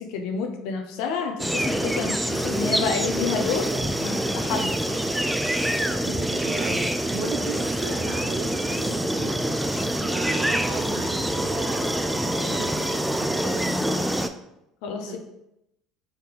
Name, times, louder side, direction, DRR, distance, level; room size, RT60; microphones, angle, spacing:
voice 1, 0.0-3.7 4.0-4.8 14.8-15.2, left 5 dB, 65° left, 4 dB, 0.5 m, -29 dB
sound 1, 1.4-14.3, right 1 dB, 5° right, 0.3 m, -26 dB
voice 2, 5.8-9.7 10.0-14.2 15.1-15.2, right 4 dB, 55° right, 4 dB, 0.6 m, -36 dB
3.5 x 2.8 x 3.7 m, 0.85 s
hypercardioid pair, 65°, 0 cm